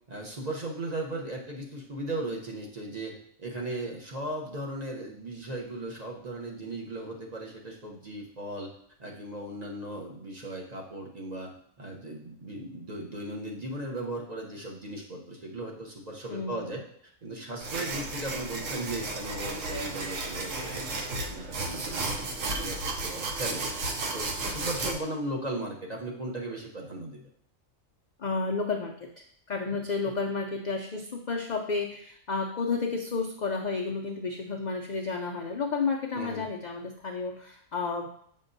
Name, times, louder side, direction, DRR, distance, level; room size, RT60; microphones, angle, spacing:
voice 1, 0.1-8.7 9.0-16.8 17.2-22.1 22.4-27.2 29.7-29.8 36.1-36.5, right 1 dB, 35° right, -1 dB, 0.9 m, -37 dB
voice 2, 16.3-16.7 24.4-24.9 28.2-38.1, left 4 dB, 70° left, 2 dB, 0.4 m, -32 dB
sound 1, 17.6-24.9, right 2 dB, 75° right, 1.2 m, -33 dB
7.0 x 5.6 x 2.6 m, 0.64 s
omnidirectional pair, 1.4 m